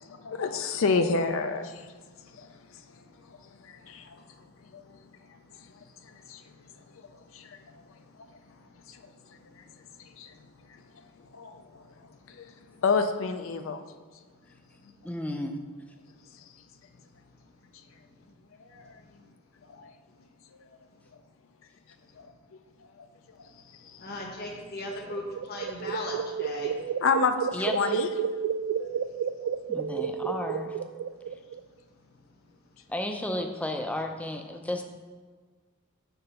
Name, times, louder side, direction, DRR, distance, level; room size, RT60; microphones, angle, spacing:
voice 1, 0.0-2.0 2.3-2.5 3.3-4.2 4.7-5.0 6.0-6.4 7.3-7.8 8.9-9.0 9.6-9.7 10.2-10.3 11.3-11.8 12.3-12.5 12.8-13.8 18.6-19.0 19.7-19.9 20.5-20.7 22.2-22.3 23.0-23.1 23.4-23.5 23.8-24.1 27.0-28.1 28.8-28.9, left 4 dB, 65° left, 8 dB, 0.4 m, -30 dB
voice 2, 15.0-15.6 27.5-27.9 29.7-30.8 32.9-34.8, left 1 dB, 5° left, 5 dB, 0.5 m, -33 dB
voice 3, 24.0-26.8, left 2 dB, 50° left, 2 dB, 1.0 m, -37 dB
sound 1, 25.1-31.6, right 7 dB, 80° right, 0.3 m, -32 dB
6.9 x 3.8 x 5.6 m, 1.5 s
head